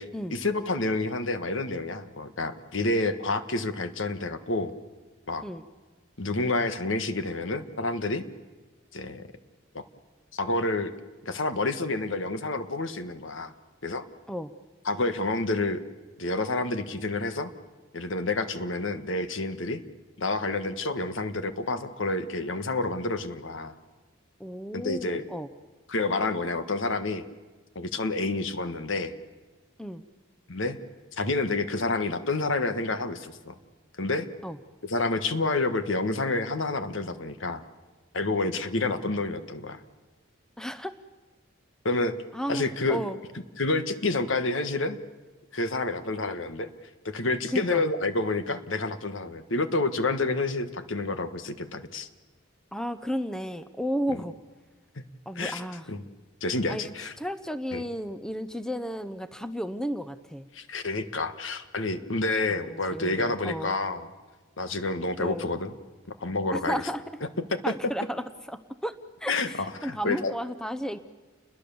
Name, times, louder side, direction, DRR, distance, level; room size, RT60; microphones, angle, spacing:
voice 1, 0.3-4.7 5.3-5.5 6.2-8.2 8.9-9.3 9.7-9.8 10.3-10.9 11.2-13.5 13.8-14.0 14.8-15.8 16.2-17.5 17.9-19.8 20.2-23.7 24.7-25.2 25.9-27.2 27.7-29.1 30.5-30.8 31.1-33.5 34.0-34.3 34.8-37.6 38.1-39.8 41.8-42.2 42.5-43.0 43.6-45.0 45.5-46.7 47.0-52.1 55.0-55.1 55.3-55.6 55.9-56.0 56.4-57.1 57.7-57.8 60.5-64.1 64.6-65.7 66.2-66.8 67.5-67.7 69.3-70.3, left 2 dB, 65° left, 10 dB, 1.5 m, -29 dB
voice 2, 24.4-25.5 29.8-30.0 34.4-34.6 40.6-40.9 42.3-43.2 47.5-47.8 52.7-54.3 55.3-56.0 56.7-60.5 62.5-63.7 65.2-65.5 66.5-67.0 67.6-68.9 69.2-71.0, equal, 5° left, 11 dB, 0.7 m, -33 dB
29.5 x 21.5 x 7.1 m, 1.3 s
head